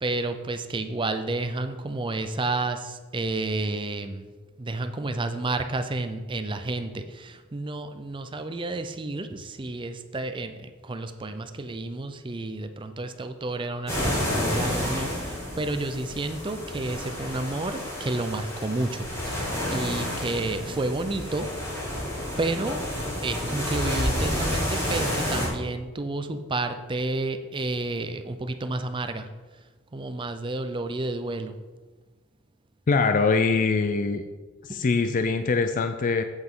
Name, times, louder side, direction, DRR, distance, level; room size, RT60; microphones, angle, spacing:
voice 1, 0.0-4.3 4.6-21.5 21.9-22.0 22.4-22.8 23.2-29.3 29.9-31.5 34.7-34.8, right 2 dB, 25° right, 9 dB, 0.5 m, -31 dB
sound 1, 13.9-25.5, left 1 dB, 15° left, 2.3 m, -30 dB
voice 2, 32.9-34.2 34.6-36.2, left 4 dB, 40° left, 8 dB, 0.4 m, -23 dB
8.1 x 7.6 x 3.7 m, 1.3 s
head